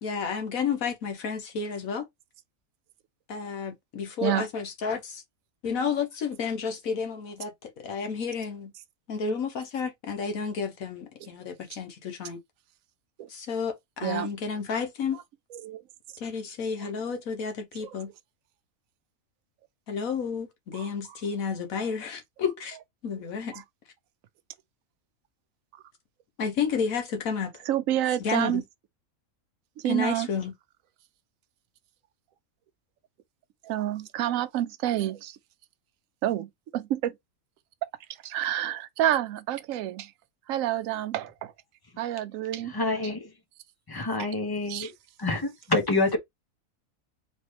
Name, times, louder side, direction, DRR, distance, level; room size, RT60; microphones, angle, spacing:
voice 1, 0.0-2.0 3.3-5.2 5.6-8.7 9.1-12.4 13.3-15.2 16.2-18.1 19.9-22.8 23.0-23.6 26.4-27.6 28.2-28.6 29.8-30.5, left 6 dB, 75° left, 1.3 m, -31 dB
voice 2, 27.7-28.6 29.8-30.3 33.6-35.3 36.2-37.1 38.2-40.1 40.5-41.5 42.0-42.7 44.2-44.3 44.7-44.9, right 12 dB, 75° right, 1.0 m, -28 dB
voice 3, 42.7-43.2 43.9-44.9 45.2-46.2, left 2 dB, 20° left, 0.6 m, -27 dB
4.3 x 3.0 x 3.1 m
omnidirectional pair, 1.5 m